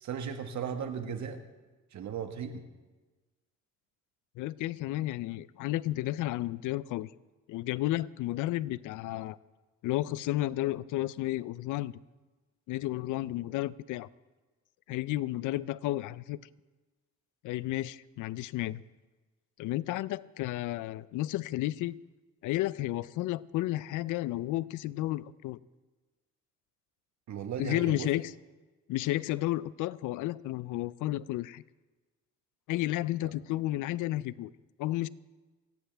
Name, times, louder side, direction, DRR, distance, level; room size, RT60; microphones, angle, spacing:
voice 1, 0.0-1.4 1.9-2.6 27.3-28.1, right 7 dB, 70° right, 1.5 m, -36 dB
voice 2, 4.4-7.1 7.5-9.4 9.8-11.9 12.7-14.1 14.9-16.4 17.4-18.8 19.6-21.9 22.4-25.6 27.6-28.3 28.9-31.6 32.7-34.5 34.8-35.1, left 16 dB, 90° left, 0.5 m, -32 dB
28.5 x 10.0 x 3.4 m
cardioid pair, 90°, 30 cm